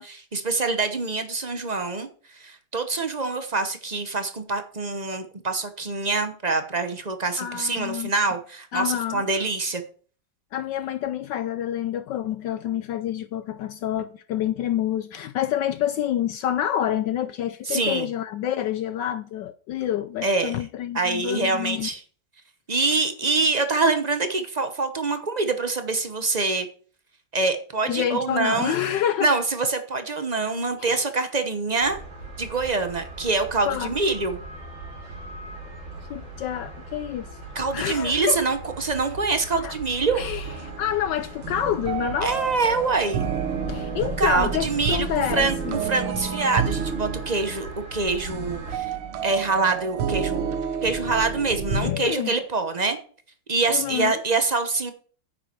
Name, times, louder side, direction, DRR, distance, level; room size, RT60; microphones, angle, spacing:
voice 1, 0.0-2.1 2.3-9.8 17.7-18.1 20.2-20.5 20.9-22.0 22.7-26.7 27.3-28.8 29.2-32.0 32.4-34.4 37.5-40.2 42.2-43.2 44.2-48.9 49.2-53.0 53.5-54.9, right 3 dB, 40° right, 0.5 m, -25 dB
voice 2, 7.4-8.1 8.7-9.2 10.5-21.9 27.9-29.3 30.8-31.0 33.6-33.9 36.1-37.3 37.7-38.5 39.6-39.8 40.1-42.3 43.7-45.7 51.7-52.4 53.7-54.1, left 11 dB, 75° left, 1.1 m, -28 dB
sound 1, 31.8-48.8, right 1 dB, 65° right, 4.2 m, -39 dB
sound 2, 40.5-51.8, right 7 dB, 80° right, 1.9 m, -30 dB
9.7 x 7.4 x 4.5 m
omnidirectional pair, 2.3 m